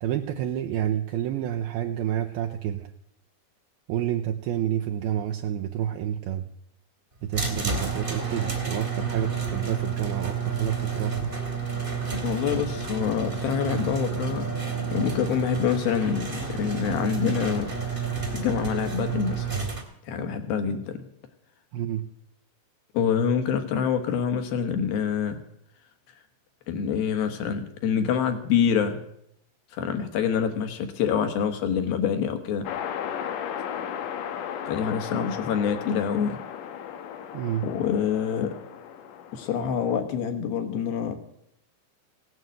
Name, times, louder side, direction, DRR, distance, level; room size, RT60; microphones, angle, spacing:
voice 1, 0.0-2.9 3.9-6.5 7.2-11.3 21.7-22.0 37.3-37.6, right 10 dB, 75° right, 3 dB, 2.3 m, -29 dB
sound 1, 7.3-19.8, right 5 dB, 20° right, 1.3 m, -30 dB
voice 2, 12.2-19.5 20.1-21.1 22.9-25.4 26.7-29.0 29.7-32.7 34.7-36.4 37.6-38.6 39.3-41.2, left 7 dB, 65° left, 6 dB, 2.9 m, -26 dB
sound 2, 32.7-40.0, left 9 dB, 90° left, 3.5 m, -35 dB
17.0 x 9.6 x 7.8 m, 0.74 s
omnidirectional pair, 5.0 m